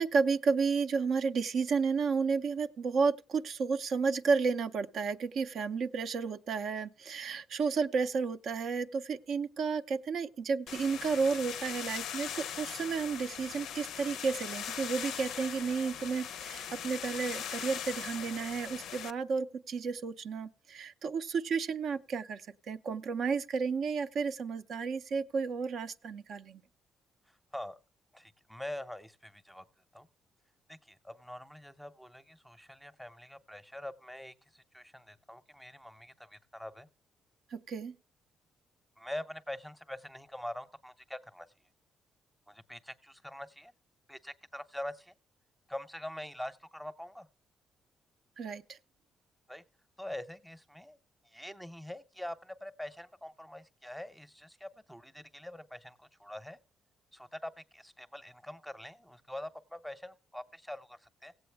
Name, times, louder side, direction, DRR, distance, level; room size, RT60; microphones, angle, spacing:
voice 1, 0.0-26.6 37.5-37.9 48.4-48.8, right 5 dB, 65° right, 0.5 m, -32 dB
sound 1, 10.7-19.1, left 9 dB, 85° left, 0.4 m, -40 dB
voice 2, 28.1-29.6 29.9-30.1 30.7-36.9 39.0-41.5 42.5-43.7 44.1-45.1 45.7-47.3 49.5-49.6 50.0-51.0 51.2-56.6 57.1-61.3, left 1 dB, ahead, 0.6 m, -44 dB
17.0 x 7.9 x 3.3 m
cardioid pair, 90°, 0 cm